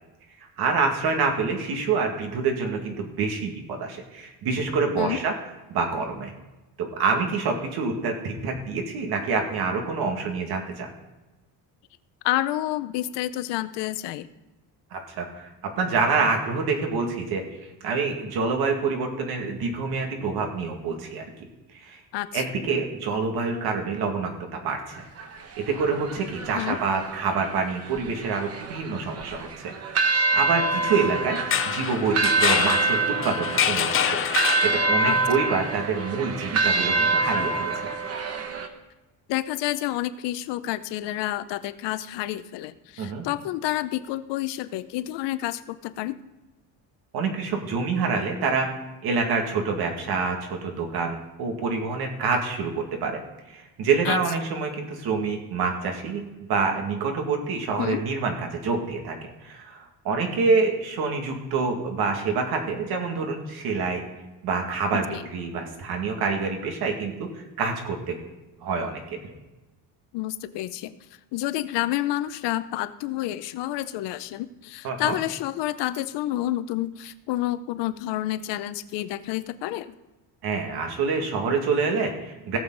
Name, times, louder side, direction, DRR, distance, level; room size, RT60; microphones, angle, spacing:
voice 1, 0.6-5.3 5.7-6.3 6.8-10.9 14.9-15.5 15.8-21.2 21.7-22.0 22.3-25.0 25.6-29.7 30.0-31.4 31.6-34.2 34.6-37.9 43.0-43.2 47.1-48.7 49.0-53.2 53.5-59.2 59.4-64.0 64.4-68.2 68.6-69.2 74.8-75.2 80.4-82.6, right 4 dB, 60° right, 3 dB, 2.2 m, -27 dB
voice 2, 12.2-14.3 22.1-22.4 26.5-26.8 35.0-35.2 39.3-46.2 54.0-54.2 57.8-58.0 64.9-65.2 70.1-70.9 71.3-79.9, left 14 dB, 80° left, 13 dB, 0.7 m, -29 dB
sound 1, 24.9-38.7, right 3 dB, 35° right, 1.0 m, -26 dB
sound 2, 31.4-35.2, left 9 dB, 30° left, 0.5 m, -26 dB
17.5 x 7.1 x 3.9 m, 1.1 s
cardioid pair, 180°, 42 cm